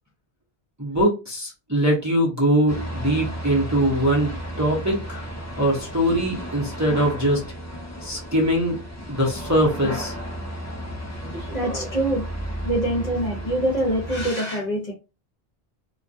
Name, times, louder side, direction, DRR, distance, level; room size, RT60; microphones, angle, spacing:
voice 1, 0.8-5.3 5.6-7.4 8.0-8.8 9.1-10.1, right 1 dB, 20° right, 0.7 m, -22 dB
sound 1, 2.7-14.3, equal, 30° left, 0.3 m, -33 dB
voice 2, 11.2-12.2 12.6-14.9, right 1 dB, 45° left, 0.8 m, -25 dB
2.3 x 2.2 x 2.6 m
omnidirectional pair, 1.0 m